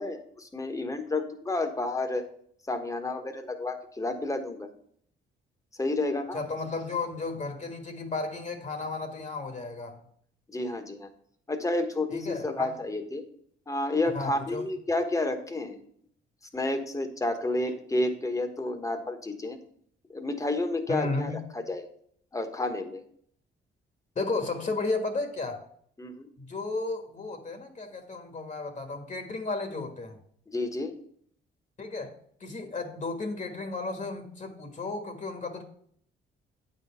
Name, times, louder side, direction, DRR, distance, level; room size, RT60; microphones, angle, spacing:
voice 1, 0.0-2.2 2.7-4.7 5.8-6.4 10.5-11.1 11.5-13.2 13.7-15.8 16.5-19.6 20.1-21.9 22.3-23.0 26.0-26.3 30.5-30.9, left 2 dB, 15° left, 5 dB, 1.3 m, -30 dB
voice 2, 6.3-10.0 12.1-12.7 14.1-14.7 20.9-21.4 24.1-25.6 26.4-30.2 31.8-32.1 32.4-35.6, left 3 dB, 40° left, 5 dB, 1.5 m, -33 dB
8.7 x 4.2 x 5.7 m, 0.63 s
cardioid pair, 90°, 20 cm